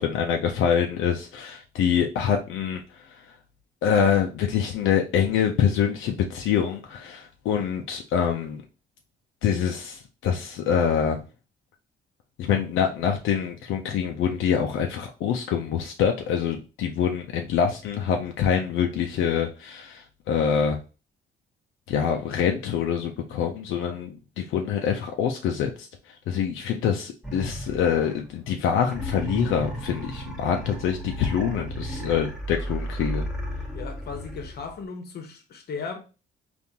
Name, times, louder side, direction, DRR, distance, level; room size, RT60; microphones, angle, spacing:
voice 1, 0.0-3.3 3.8-8.6 9.4-11.2 12.4-20.8 21.9-33.2, left 7 dB, 85° left, 0.5 m, -25 dB
sound 1, 27.2-28.4 28.9-34.8, right 1 dB, ahead, 0.9 m, -34 dB
voice 2, 33.7-36.0, left 5 dB, 55° left, 0.8 m, -36 dB
3.6 x 2.5 x 2.8 m
cardioid pair, 90°, 20 cm